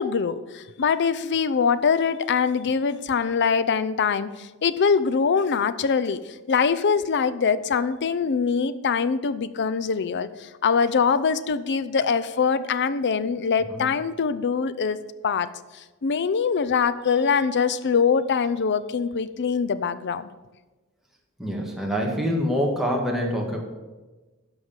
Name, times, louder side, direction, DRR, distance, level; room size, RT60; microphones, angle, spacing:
voice 1, 0.0-15.0 15.2-15.5 15.7-20.3, left 6 dB, 50° left, 15 dB, 0.5 m, -23 dB
voice 2, 21.4-23.6, equal, ahead, -1 dB, 1.8 m, -25 dB
12.5 x 4.9 x 7.3 m, 1.2 s
head